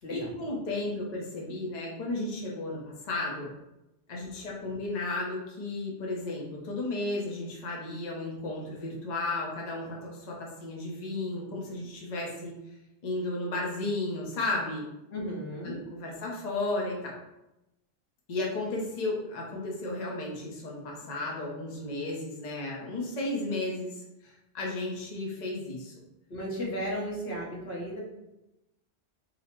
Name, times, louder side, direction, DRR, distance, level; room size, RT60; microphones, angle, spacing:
voice 1, 0.1-3.5 4.1-12.5 13.0-14.9 15.6-17.2 18.3-25.9, left 2 dB, 45° left, -3 dB, 0.7 m, -34 dB
voice 2, 15.1-15.8 26.3-28.0, equal, 65° left, -4 dB, 1.2 m, -34 dB
3.8 x 2.1 x 4.3 m, 0.93 s
omnidirectional pair, 1.1 m